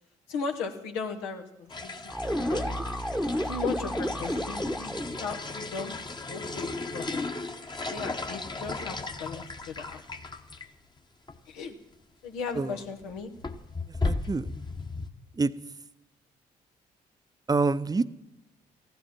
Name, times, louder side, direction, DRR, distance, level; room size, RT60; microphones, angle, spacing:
voice 1, 0.3-2.1 2.5-2.8 3.4-6.0 6.3-7.2 7.9-10.0 11.5-11.8 12.2-13.3, left 5 dB, 85° left, 3 dB, 1.1 m, -36 dB
sound 1, 1.7-10.7 11.0-11.1 11.3-11.4 12.4-12.6 13.0-15.1, left 3 dB, 25° left, 1.1 m, -36 dB
sound 2, 2.1-5.2, equal, ahead, 1.0 m, -31 dB
voice 2, 13.9-14.5 15.3-15.5 17.5-18.1, right 3 dB, 20° right, 15 dB, 0.6 m, -27 dB
14.5 x 10.0 x 6.0 m, 0.86 s
hypercardioid pair, 50°, 19 cm